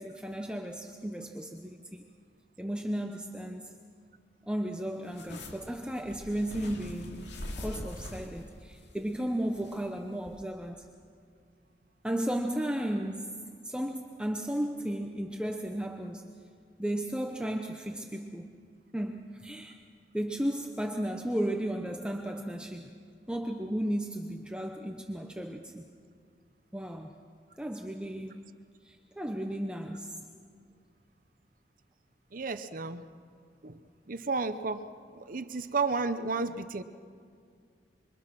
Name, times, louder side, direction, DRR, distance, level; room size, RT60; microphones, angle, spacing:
voice 1, 0.0-2.0 2.6-3.7 4.5-10.9 12.0-13.3 13.6-16.3 16.8-18.5 18.9-19.8 20.1-22.9 23.3-25.8 26.7-27.1 27.6-28.4 28.8-30.2, right 1 dB, 5° right, 3 dB, 0.9 m, -34 dB
sound 1, 5.1-9.9 10.3-10.4, left 1 dB, 70° left, 2.7 m, -43 dB
voice 2, 32.3-33.1 33.6-33.8 34.1-34.9 35.1-36.8, right 4 dB, 50° right, 11 dB, 0.8 m, -32 dB
26.5 x 24.0 x 6.0 m, 2.2 s
head